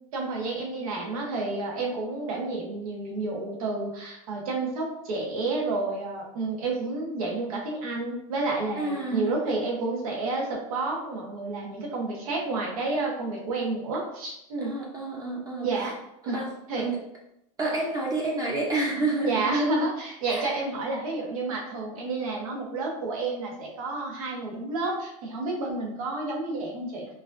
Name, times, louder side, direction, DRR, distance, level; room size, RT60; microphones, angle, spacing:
voice 1, 0.1-14.7 15.6-15.9 16.2-16.4 16.7-16.8 19.2-27.1, right 3 dB, 80° right, -1 dB, 1.2 m, -30 dB
voice 2, 8.8-9.3 14.6-15.9 16.2-17.0 17.6-19.5 20.3-20.6, right 2 dB, 20° right, -2 dB, 0.8 m, -29 dB
4.6 x 2.7 x 2.6 m, 0.79 s
supercardioid pair, 135°, 18 cm